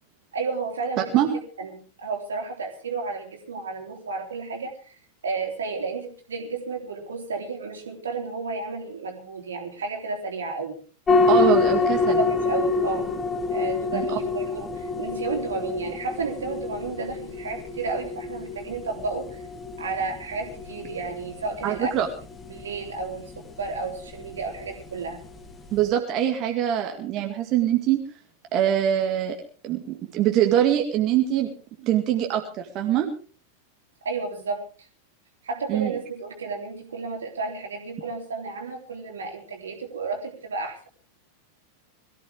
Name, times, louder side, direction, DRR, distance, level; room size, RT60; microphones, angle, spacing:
voice 1, 0.3-1.2 1.6-4.9 5.2-10.8 12.2-13.1 13.5-19.4 19.8-21.9 22.5-25.2 34.0-34.6 35.4-40.8, right 4 dB, 70° right, 3 dB, 3.6 m, -32 dB
sound 1, 11.1-25.9, left 4 dB, 20° left, 2.1 m, -27 dB
voice 2, 11.3-12.2 13.9-14.2 21.6-22.1 25.7-28.0 28.5-29.4 29.6-31.5 31.8-33.1 35.7-36.0, right 11 dB, 35° right, 3 dB, 2.1 m, -23 dB
22.0 x 15.0 x 3.5 m, 0.39 s
figure-of-eight pair, 90°, 0 cm